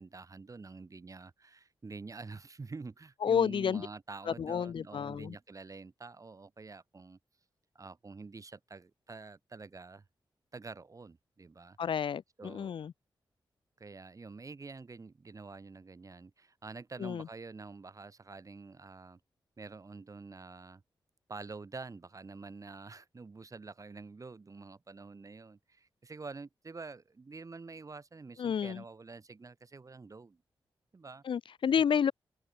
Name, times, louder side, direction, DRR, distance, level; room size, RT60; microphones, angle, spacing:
voice 1, 0.0-7.2 7.7-10.0 10.5-11.8 12.4-12.7 13.8-19.2 19.6-20.8 21.3-30.4 30.9-31.2 31.7-31.8, right 4 dB, 40° right, 6.0 m, -47 dB
voice 2, 3.2-3.9 4.3-5.3 11.8-12.9 17.0-17.3 28.4-28.8 31.2-32.1, left 7 dB, 75° left, 1.0 m, -30 dB
cardioid pair, 85°, 9 cm